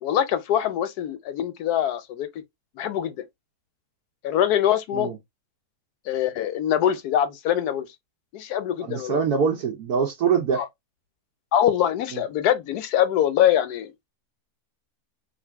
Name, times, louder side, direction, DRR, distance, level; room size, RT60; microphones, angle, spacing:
voice 1, 0.0-2.3 2.8-3.2 4.2-5.1 6.1-7.9 8.3-9.2 10.6-10.7 11.5-13.9, left 10 dB, 85° left, 1.2 m, -23 dB
voice 2, 8.8-10.6 12.1-12.2, right 6 dB, 80° right, 1.4 m, -24 dB
3.3 x 2.5 x 4.4 m
omnidirectional pair, 1.6 m